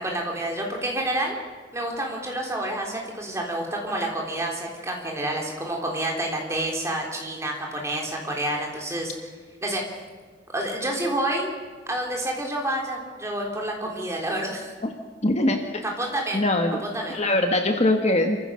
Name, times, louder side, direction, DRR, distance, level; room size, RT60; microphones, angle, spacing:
voice 1, 0.0-1.4 1.7-9.1 9.6-9.9 10.5-11.5 11.9-14.7 15.8-16.4 16.8-17.2, right 1 dB, 15° right, 0 dB, 3.6 m, -28 dB
voice 2, 15.2-15.8 16.3-16.8 17.1-18.4, left 1 dB, 35° left, 5 dB, 1.4 m, -22 dB
27.5 x 15.0 x 6.4 m, 1.5 s
head